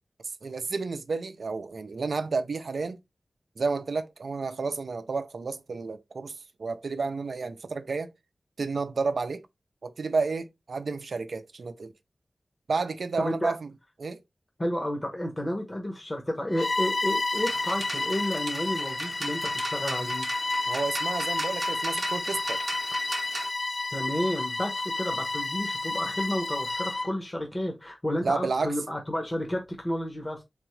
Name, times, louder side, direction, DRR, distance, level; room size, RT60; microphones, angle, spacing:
voice 1, 0.4-3.0 3.6-8.1 8.6-9.5 9.8-11.9 12.7-13.7 14.0-14.2 20.7-22.6 28.2-28.7, right 4 dB, 80° right, 0.4 m, -31 dB
voice 2, 13.2-13.5 14.6-20.2 23.9-30.4, left 1 dB, 30° left, 0.9 m, -31 dB
Bowed string instrument, 16.5-27.1, left 2 dB, 50° left, 0.4 m, -30 dB
sound 1, 17.4-23.5, right 2 dB, 50° right, 0.7 m, -39 dB
3.6 x 3.5 x 3.1 m
wide cardioid pair, 60°, 0 cm